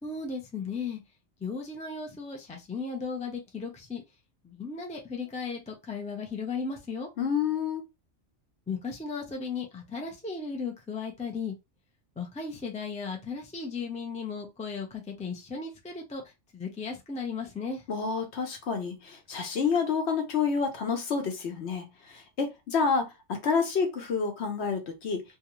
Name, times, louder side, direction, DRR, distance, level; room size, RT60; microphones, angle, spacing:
voice 1, 0.0-1.0 1.4-4.0 4.4-7.1 8.7-11.5 12.2-16.2 16.5-17.8, left 5 dB, 10° left, 0.4 m, -36 dB
voice 2, 7.2-7.8 17.9-25.2, left 5 dB, 65° left, 1.0 m, -29 dB
2.4 x 2.3 x 2.9 m
omnidirectional pair, 1.2 m